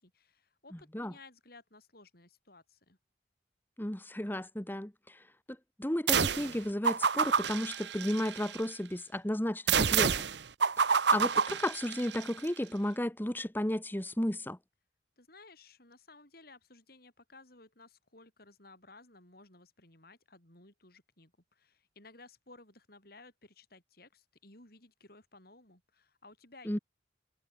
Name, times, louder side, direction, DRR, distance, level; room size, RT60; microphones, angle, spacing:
voice 1, 0.0-3.0 15.2-26.7, left 3 dB, 55° left, 7.6 m, -57 dB
voice 2, 3.8-5.2 5.8-10.1 11.1-14.6 26.6-26.8, left 1 dB, 10° left, 1.2 m, -33 dB
sound 1, 6.1-6.5 6.8-8.6 9.7-12.3, right 6 dB, 70° right, 1.1 m, -28 dB
head